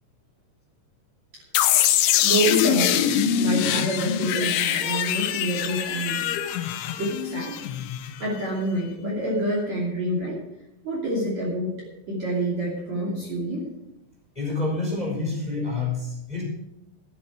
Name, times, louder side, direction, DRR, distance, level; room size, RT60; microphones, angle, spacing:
sound 1, 1.5-8.3, left 10 dB, 85° left, 3.2 m, -23 dB
voice 1, 2.2-3.1 3.4-6.2 6.5-6.6 7.0-7.6 8.2-10.4 10.8-11.8 12.1-13.6, right 1 dB, 40° right, -3 dB, 3.5 m, -27 dB
voice 2, 14.3-16.4, left 3 dB, 10° left, -2 dB, 4.1 m, -28 dB
13.0 x 11.0 x 4.8 m, 0.86 s
omnidirectional pair, 5.6 m